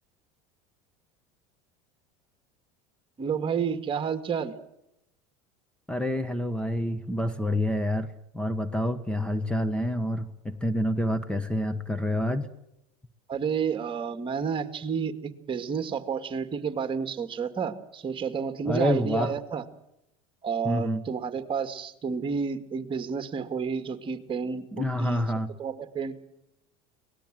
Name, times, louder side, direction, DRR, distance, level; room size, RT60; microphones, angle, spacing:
voice 1, 3.2-4.5 13.3-19.6 20.4-25.3 25.6-26.1, right 6 dB, 30° right, 9 dB, 2.2 m, -30 dB
voice 2, 5.9-12.5 18.6-19.3 20.6-21.0 24.7-25.5, left 1 dB, 5° left, 11 dB, 1.3 m, -28 dB
24.5 x 19.0 x 7.7 m, 0.83 s
supercardioid pair, 110°, 17 cm